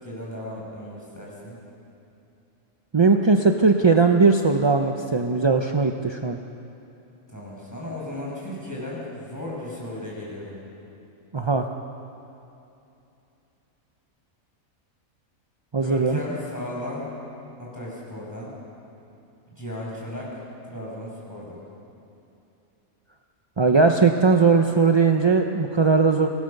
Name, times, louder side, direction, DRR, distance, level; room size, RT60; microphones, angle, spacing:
voice 1, 0.0-1.6 7.3-10.6 15.8-17.1 17.6-18.5 19.6-21.6, left 1 dB, 10° left, -5 dB, 6.0 m, -35 dB
voice 2, 2.9-6.4 11.3-11.7 15.7-16.2 23.6-26.3, right 4 dB, 30° right, 4 dB, 0.5 m, -19 dB
23.0 x 17.0 x 6.6 m, 2.8 s
omnidirectional pair, 1.5 m